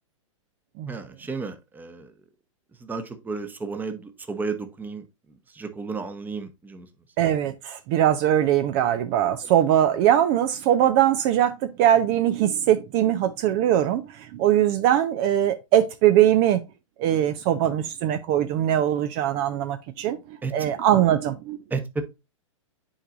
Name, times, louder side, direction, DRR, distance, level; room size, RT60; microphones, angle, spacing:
voice 1, 0.9-2.1 2.8-5.0 5.5-6.9 20.4-20.5 21.7-22.0, right 4 dB, 10° right, 1.1 m, -32 dB
voice 2, 7.2-16.6 17.0-20.2 20.5-21.6, right 11 dB, 40° right, 0.7 m, -21 dB
9.9 x 4.7 x 2.5 m
hypercardioid pair, 115°, 17 cm